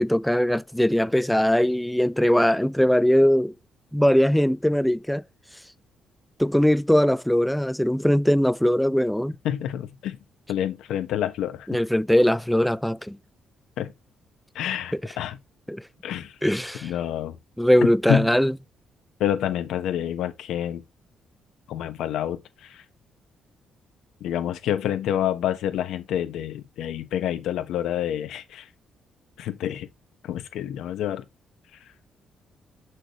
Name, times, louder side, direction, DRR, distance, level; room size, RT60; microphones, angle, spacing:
voice 1, 0.0-3.6 3.9-5.2 6.4-9.3 11.7-13.2 15.7-15.8 16.4-16.9 17.6-18.5, equal, 5° left, 0.4 m, -20 dB
voice 2, 9.4-10.2 10.5-11.7 13.8-13.9 14.5-15.4 16.0-16.4 16.8-17.4 18.1-18.4 19.2-20.8 21.7-22.8 24.2-28.7 29.4-29.9 30.2-31.2 31.7-31.8, left 10 dB, 85° left, 1.2 m, -28 dB
6.7 x 6.1 x 3.1 m
cardioid pair, 90°, 0 cm